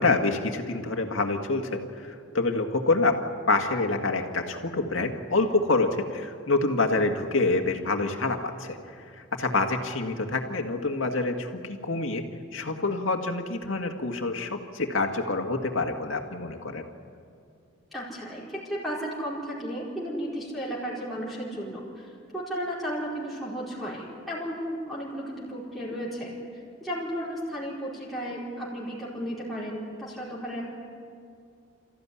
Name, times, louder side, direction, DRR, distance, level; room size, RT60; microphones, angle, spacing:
voice 1, 0.0-3.2 3.5-12.2 12.5-16.9, left 3 dB, 80° left, 4 dB, 2.0 m, -27 dB
voice 2, 17.9-26.3 26.8-30.6, equal, ahead, -8 dB, 4.7 m, -34 dB
28.0 x 14.5 x 9.9 m, 2.4 s
head